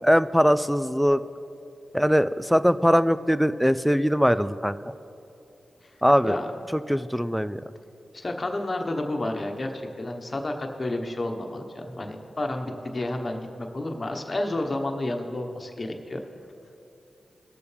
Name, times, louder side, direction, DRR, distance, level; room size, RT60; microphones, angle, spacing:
voice 1, 0.0-1.2 1.9-4.8 6.0-6.4 6.9-7.6, equal, ahead, 14 dB, 0.4 m, -21 dB
voice 2, 8.1-16.2, left 1 dB, 40° left, 3 dB, 1.2 m, -31 dB
19.0 x 6.9 x 3.5 m, 2.7 s
cardioid pair, 50°, 0 cm